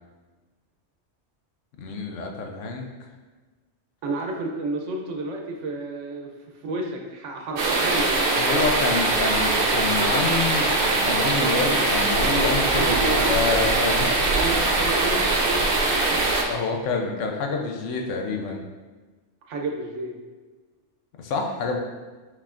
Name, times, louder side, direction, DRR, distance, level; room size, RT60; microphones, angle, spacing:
voice 1, 1.8-2.9 8.4-14.2 16.5-18.6 21.2-21.8, left 4 dB, 85° left, 2 dB, 1.0 m, -27 dB
voice 2, 4.0-6.3 6.6-8.3 12.5-13.4 14.3-16.1 19.5-20.2, right 2 dB, 80° right, 1 dB, 1.0 m, -31 dB
sound 1, 7.6-16.4, right 2 dB, 55° right, 0.7 m, -22 dB
5.5 x 3.5 x 2.5 m, 1.3 s
omnidirectional pair, 1.3 m